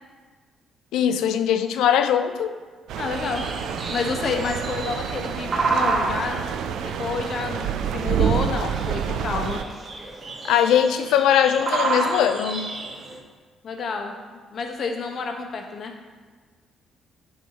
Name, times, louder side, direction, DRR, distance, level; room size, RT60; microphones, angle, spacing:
voice 1, 0.9-2.6 8.6-8.7 9.3-9.4 10.4-12.7, left 9 dB, 85° left, 9 dB, 0.4 m, -21 dB
sound 1, 2.9-9.6, right 8 dB, 85° right, 0.3 m, -28 dB
voice 2, 3.0-3.4 3.9-6.4 7.0-9.6 13.6-14.1 14.5-15.9, left 4 dB, 55° left, 4 dB, 0.9 m, -29 dB
sound 2, 3.1-13.2, right 3 dB, 35° right, 0.9 m, -30 dB
9.3 x 3.5 x 4.1 m, 1.5 s
cardioid pair, 100°, 0 cm